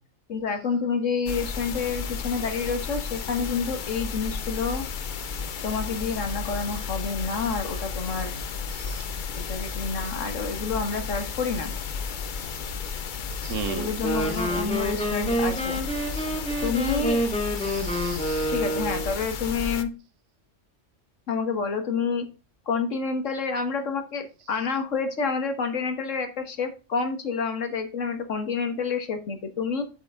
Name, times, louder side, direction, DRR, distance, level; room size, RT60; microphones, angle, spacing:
voice 1, 0.3-4.9 5.6-8.3 9.4-11.7 13.7-15.8 16.6-17.2 18.5-19.9 21.3-22.3 22.7-29.8, left 5 dB, 80° left, 1.8 m, -28 dB
sound 1, 1.3-19.8, left 5 dB, 50° left, 0.7 m, -33 dB
voice 2, 8.7-9.1 13.4-13.9 14.2-14.3 16.1-16.3 17.6-18.5, right 6 dB, 85° right, 1.3 m, -36 dB
Wind instrument woodwind instrument, 14.0-19.2, equal, 5° left, 1.4 m, -28 dB
7.9 x 5.3 x 3.7 m
omnidirectional pair, 1.3 m